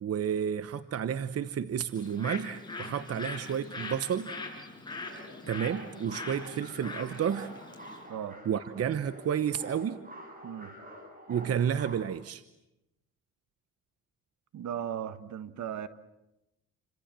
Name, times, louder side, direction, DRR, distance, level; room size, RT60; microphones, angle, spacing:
voice 1, 0.0-4.3 5.5-7.5 8.5-10.0 11.3-12.4, right 8 dB, 50° right, 1.1 m, -31 dB
Bird, 1.9-8.1, left 3 dB, 15° left, 6.9 m, -42 dB
sound 1, 5.0-12.0, right 1 dB, 30° right, 7.9 m, -48 dB
voice 2, 8.1-8.4 10.4-10.7 14.5-15.9, right 9 dB, 70° right, 1.6 m, -37 dB
30.0 x 26.0 x 7.6 m
cardioid pair, 90°, 30 cm